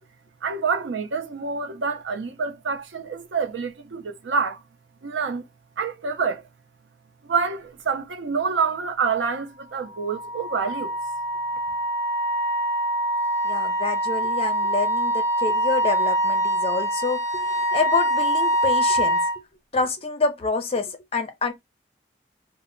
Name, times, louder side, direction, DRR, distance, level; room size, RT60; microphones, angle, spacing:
voice 1, 0.4-4.6 5.0-5.4 5.8-6.4 7.2-11.0, right 5 dB, 85° right, 0.5 m, -27 dB
Wind instrument woodwind instrument, 9.9-19.4, right 1 dB, 25° right, 0.7 m, -24 dB
voice 2, 13.4-19.2 19.7-21.5, left 4 dB, 35° left, 0.5 m, -27 dB
2.0 x 2.0 x 3.6 m
head